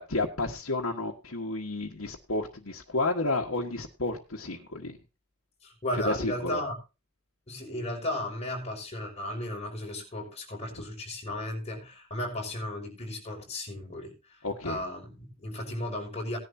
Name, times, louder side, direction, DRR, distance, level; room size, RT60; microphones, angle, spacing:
voice 1, 0.0-5.0 5.9-6.6 14.4-14.8, left 2 dB, 85° left, -2 dB, 1.7 m, -31 dB
voice 2, 5.6-6.8 7.5-14.1 14.6-16.4, left 1 dB, 30° left, 0 dB, 5.8 m, -35 dB
18.0 x 11.0 x 2.8 m, 0.29 s
head